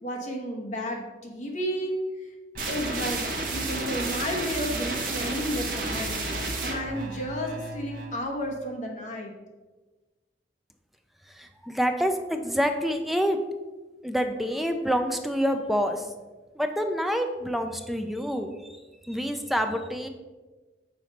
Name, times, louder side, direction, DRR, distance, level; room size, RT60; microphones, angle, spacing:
voice 1, 0.0-2.0 2.7-9.3, equal, 45° left, 0 dB, 1.1 m, -32 dB
sound 1, 2.5-8.2, right 2 dB, 50° right, 1.1 m, -31 dB
voice 2, 11.3-13.4 14.0-16.1 16.6-18.5 19.0-20.1, equal, ahead, 6 dB, 0.4 m, -27 dB
5.9 x 3.9 x 5.1 m, 1.2 s
head